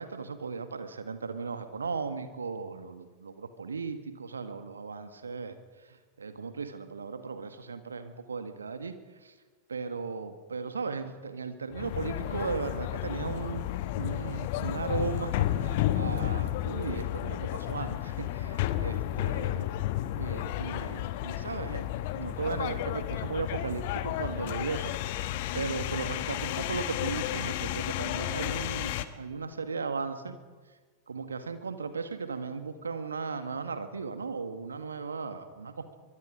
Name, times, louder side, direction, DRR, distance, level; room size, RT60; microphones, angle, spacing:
voice 1, 0.0-9.0 9.2-9.3 9.7-13.7 14.0-19.7 20.2-21.9 22.1-24.9 25.2-30.4 31.1-36.0, right 4 dB, 75° right, 9 dB, 1.6 m, -36 dB
sound 1, 11.7-29.1, left 13 dB, 50° left, 1.1 m, -32 dB
23.5 x 23.5 x 5.1 m, 1.4 s
figure-of-eight pair, 90°, 0 cm